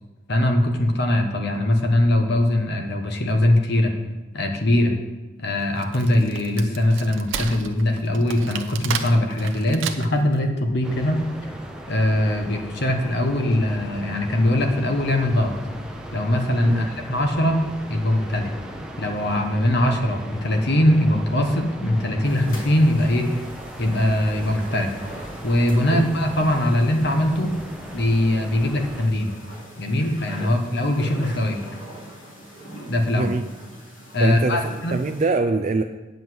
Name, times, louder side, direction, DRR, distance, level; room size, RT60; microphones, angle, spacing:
voice 1, 0.3-3.9 4.3-4.9 5.4-11.2 11.9-15.5 16.1-17.6 17.9-18.5 19.0-23.3 23.8-24.9 25.4-27.5 27.9-29.3 29.8-31.6 32.9-33.3 34.1-35.0, left 1 dB, 55° left, 4 dB, 1.2 m, -21 dB
Wood, 5.6-10.3, right 7 dB, 70° right, 0.7 m, -33 dB
sound 1, 10.8-29.1, equal, 5° right, 0.8 m, -38 dB
sound 2, 22.2-35.3, right 1 dB, 80° left, 2.7 m, -42 dB
voice 2, 34.2-35.8, right 3 dB, 35° right, 5 dB, 0.4 m, -24 dB
9.3 x 5.3 x 7.8 m, 1.1 s
head